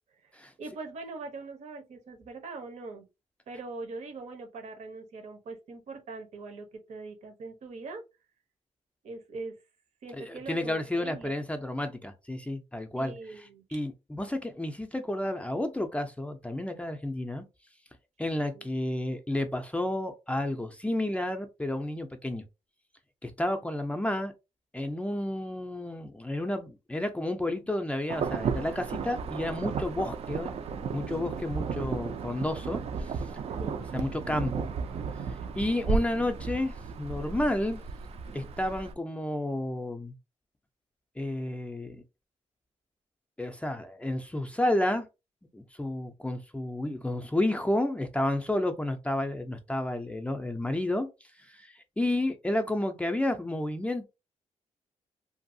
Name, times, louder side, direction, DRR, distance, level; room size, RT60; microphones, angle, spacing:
voice 1, 0.6-3.1 3.5-8.0 9.0-9.5 10.0-11.4 13.0-13.6 18.5-18.7 33.6-33.8, right 3 dB, 75° right, 0.8 m, -42 dB
voice 2, 10.2-13.1 13.7-17.4 18.2-22.4 23.2-24.3 24.7-30.5 30.9-32.8 33.9-34.7 35.6-37.8 38.3-40.1 41.2-42.0 43.4-45.1 45.5-51.1 51.5-54.0, left 1 dB, 10° left, 0.4 m, -31 dB
Insect / Thunder / Rain, 28.1-38.9, right 5 dB, 55° right, 0.4 m, -34 dB
2.6 x 2.3 x 2.6 m
cardioid pair, 110°, 12 cm